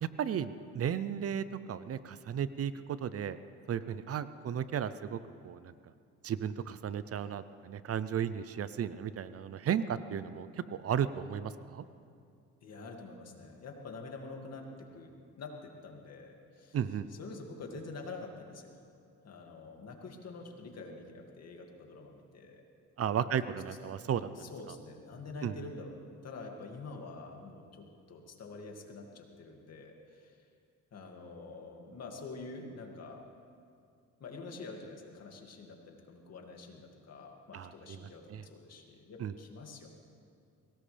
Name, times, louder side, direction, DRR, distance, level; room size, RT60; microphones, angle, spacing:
voice 1, 0.0-3.4 3.7-5.7 6.2-11.8 16.7-17.1 23.0-24.5 25.4-25.6 37.5-38.0 38.3-38.4 39.2-39.3, right 8 dB, 50° right, 14 dB, 0.6 m, -34 dB
voice 2, 12.6-16.8 17.1-18.8 19.2-22.6 23.1-23.3 24.3-30.5 30.9-33.2 34.2-39.9, left 3 dB, 55° left, 2 dB, 2.3 m, -47 dB
23.0 x 18.0 x 3.4 m, 2.4 s
cardioid pair, 90°, 30 cm